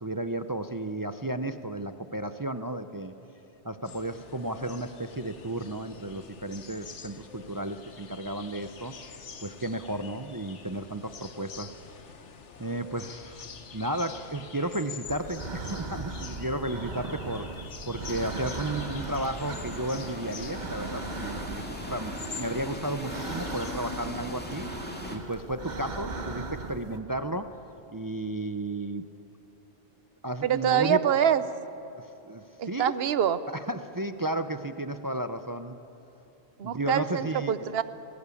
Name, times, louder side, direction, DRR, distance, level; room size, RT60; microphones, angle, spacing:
voice 1, 0.0-3.1 3.6-8.9 9.4-11.8 12.6-13.5 13.7-17.5 17.9-24.7 25.1-27.6 27.9-29.0 30.2-31.0 32.2-32.9 33.5-35.8 36.6-37.6, right 1 dB, 25° right, 9 dB, 0.5 m, -33 dB
sound 1, 3.8-23.7, left 5 dB, 85° left, 1.5 m, -46 dB
sound 2, 15.1-27.0, right 3 dB, 40° right, 1.2 m, -39 dB
sound 3, 18.1-25.2, left 1 dB, 10° left, 2.2 m, -39 dB
voice 2, 30.4-31.4 32.6-33.4 36.6-37.8, right 9 dB, 60° right, 14 dB, 0.9 m, -25 dB
21.5 x 18.0 x 8.4 m, 3.0 s
omnidirectional pair, 1.2 m